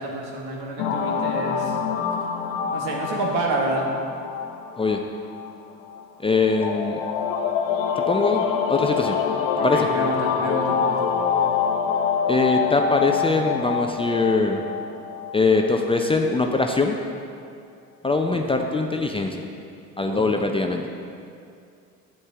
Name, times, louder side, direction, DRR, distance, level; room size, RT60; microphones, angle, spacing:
voice 1, 0.0-1.8 2.7-3.9 9.5-11.1 18.3-18.4 20.1-20.2, right 2 dB, 65° right, -1 dB, 1.7 m, -28 dB
sound 1, 0.8-16.1, left 6 dB, 65° left, 0.9 m, -26 dB
voice 2, 6.2-7.0 8.0-9.2 9.6-9.9 12.3-14.6 15.3-17.0 18.0-19.4 20.0-20.8, left 3 dB, 15° left, 3 dB, 0.6 m, -22 dB
10.5 x 7.6 x 3.5 m, 2.4 s
figure-of-eight pair, 60°, 44 cm